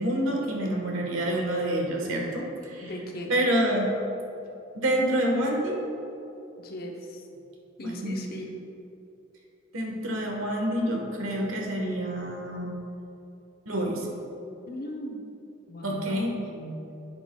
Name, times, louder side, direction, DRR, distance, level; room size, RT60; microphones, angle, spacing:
voice 1, 0.0-2.9 3.3-3.9 4.7-5.8 7.8-8.3 9.7-12.7 13.6-14.1 15.8-16.3, right 1 dB, 85° right, 0 dB, 1.4 m, -27 dB
voice 2, 2.8-3.4 6.6-7.2 7.8-8.5 14.7-15.3 15.7-16.9, equal, 50° left, 1 dB, 0.9 m, -38 dB
9.6 x 8.1 x 2.3 m, 2.9 s
head